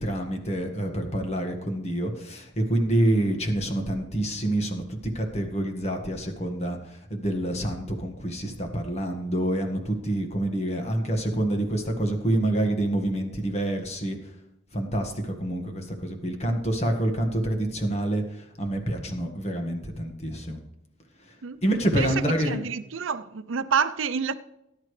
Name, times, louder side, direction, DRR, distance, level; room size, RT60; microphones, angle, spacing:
voice 1, 0.0-14.2 14.7-20.6 21.6-22.6, right 1 dB, 30° left, 1.7 m, -27 dB
voice 2, 22.4-24.3, right 6 dB, 75° right, 0.6 m, -28 dB
18.5 x 10.5 x 3.3 m
head